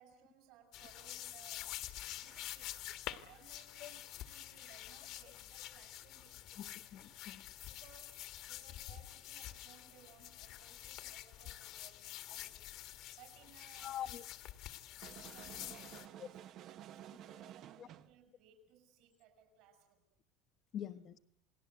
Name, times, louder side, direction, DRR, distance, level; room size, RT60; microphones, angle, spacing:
voice 1, 0.0-1.8 2.2-6.6 7.7-14.1 14.6-14.7 15.0-20.0, right 8 dB, 65° right, 4 dB, 6.1 m, -64 dB
sound 1, 0.7-16.1, left 14 dB, 60° left, 1.7 m, -48 dB
voice 2, 6.6-7.4 13.8-14.2 16.2-16.3 17.8-17.9 20.7-21.2, left 10 dB, 40° left, 13 dB, 1.1 m, -44 dB
sound 2, 15.0-18.2, right 11 dB, 45° right, 0.9 m, -52 dB
29.0 x 19.0 x 8.0 m, 0.73 s
cardioid pair, 140°, 0 cm